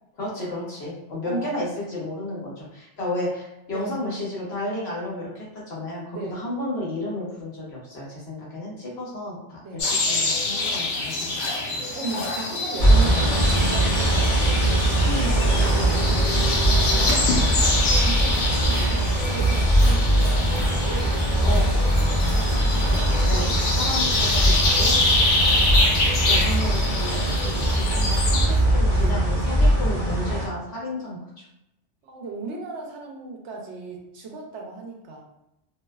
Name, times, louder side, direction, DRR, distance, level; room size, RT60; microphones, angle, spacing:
voice 1, 0.2-11.8 15.0-15.3 21.4-21.7 22.8-25.0 26.2-31.4, left 1 dB, 65° left, -5 dB, 1.0 m, -33 dB
voice 2, 1.2-1.5 3.7-4.0 6.1-6.4 9.6-9.9 12.0-14.2 15.1-16.0 17.8-20.5 20.8-22.0 25.2-25.5 32.0-35.2, right 3 dB, 75° right, -1 dB, 0.9 m, -36 dB
sound 1, 9.8-28.5, left 2 dB, 85° left, 1.0 m, -25 dB
sound 2, 12.8-30.5, right 1 dB, 45° left, 0.5 m, -21 dB
sound 3, 17.3-29.2, equal, 35° right, 0.9 m, -40 dB
2.6 x 2.1 x 2.2 m, 0.86 s
omnidirectional pair, 1.2 m